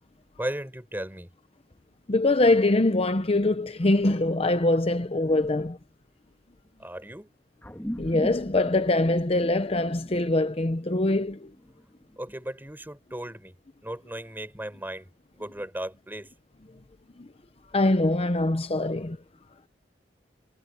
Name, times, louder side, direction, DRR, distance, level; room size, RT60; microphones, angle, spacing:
voice 1, 0.4-1.3 6.8-7.3 12.2-13.5 13.8-15.1 15.3-16.3, right 1 dB, 10° right, 5.2 m, -36 dB
voice 2, 2.1-5.8 8.0-11.5 17.2-17.3 17.7-19.2, left 2 dB, 35° left, 0.8 m, -23 dB
sound 1, 7.6-12.4, equal, 10° left, 2.5 m, -40 dB
head